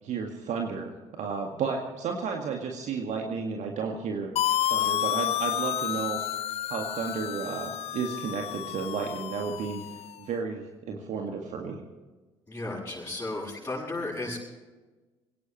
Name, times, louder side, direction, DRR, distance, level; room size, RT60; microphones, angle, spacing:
voice 1, 0.0-4.3 4.7-6.2 6.7-9.8 10.2-11.8, right 5 dB, 50° right, 2 dB, 2.0 m, -32 dB
sound 1, 4.4-10.1, left 12 dB, 40° left, 0.5 m, -30 dB
voice 2, 12.5-14.4, left 2 dB, 15° left, -7 dB, 7.5 m, -34 dB
23.5 x 18.0 x 3.2 m, 1.2 s
figure-of-eight pair, 50°, 15 cm